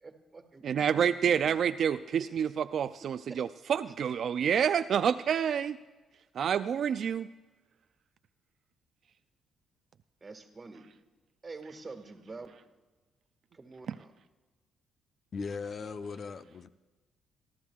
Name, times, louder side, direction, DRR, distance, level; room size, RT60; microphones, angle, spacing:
voice 1, 0.0-1.4 2.2-2.3 3.3-3.4 10.2-10.9 11.4-12.5 13.5-14.1, right 3 dB, 30° right, 6 dB, 1.6 m, -47 dB
voice 2, 0.6-5.8 6.3-7.3 13.9-14.0, right 8 dB, 60° right, 11 dB, 0.3 m, -28 dB
voice 3, 15.3-16.7, left 5 dB, 50° left, 11 dB, 0.5 m, -38 dB
26.0 x 12.5 x 2.4 m, 1.3 s
cardioid pair, 90°, 0 cm